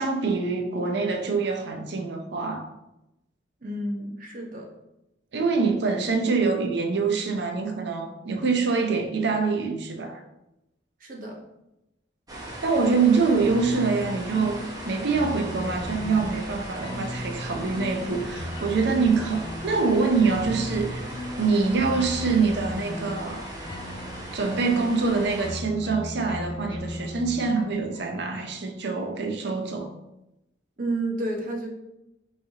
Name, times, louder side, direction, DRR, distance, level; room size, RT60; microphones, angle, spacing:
voice 1, 0.0-2.7 5.3-10.2 12.6-21.1 21.4-23.4 24.3-29.9, right 4 dB, 65° right, 0.6 m, -25 dB
voice 2, 3.6-4.7 11.0-11.4 30.8-31.7, right 2 dB, 50° right, 1.0 m, -30 dB
sound 1, 12.3-25.5, right 1 dB, 20° right, 0.9 m, -38 dB
sound 2, 13.4-28.9, left 1 dB, 25° left, 0.3 m, -38 dB
5.4 x 3.3 x 2.8 m
head